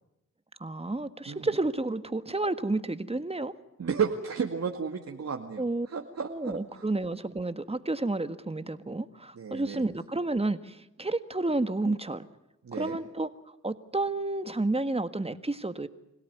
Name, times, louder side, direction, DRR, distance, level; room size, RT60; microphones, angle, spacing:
voice 1, 0.6-3.5 5.6-5.9 6.3-12.3 12.7-13.3 13.6-15.9, right 2 dB, 20° right, 10 dB, 1.6 m, -30 dB
voice 2, 3.8-6.8 9.3-9.9 12.6-13.0, right 6 dB, 55° right, 1 dB, 2.2 m, -33 dB
26.0 x 17.5 x 9.6 m, 0.91 s
cardioid pair, 60°, 31 cm